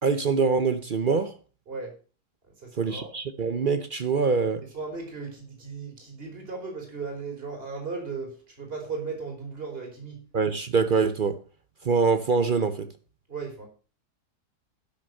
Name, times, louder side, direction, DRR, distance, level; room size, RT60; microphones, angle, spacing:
voice 1, 0.0-1.3 2.8-4.6 10.3-11.4 11.8-12.9, right 5 dB, 55° right, 0.5 m, -24 dB
voice 2, 2.6-3.1 4.7-10.2 13.3-13.7, right 4 dB, 35° right, 3.8 m, -36 dB
11.5 x 6.3 x 6.5 m
omnidirectional pair, 1.8 m